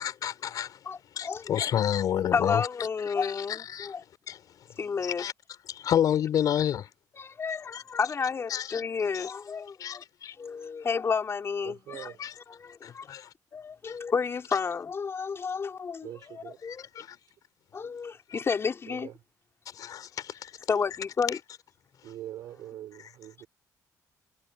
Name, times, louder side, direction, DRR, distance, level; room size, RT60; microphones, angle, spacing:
voice 1, 0.0-0.8 1.1-2.7 3.1-4.0 4.3-4.4 5.2-5.3 5.7-6.9 7.7-7.8 8.5-8.8 9.1-9.3 9.8-10.3 12.2-12.3 12.8-13.3 13.9-14.0 16.6-17.2 19.7-20.5, left 10 dB, 70° left, 5.6 m, -30 dB
voice 2, 0.8-1.4 2.3-4.0 4.8-5.2 7.1-10.0 10.4-12.1 12.5-13.1 13.5-16.9 17.7-19.1 20.7-21.4, left 5 dB, 40° left, 5.0 m, -31 dB
voice 3, 11.6-12.2 16.0-16.6 17.8-17.9 18.9-19.2 22.0-23.5, right 12 dB, 80° right, 7.2 m, -43 dB
cardioid pair, 100°, 7 cm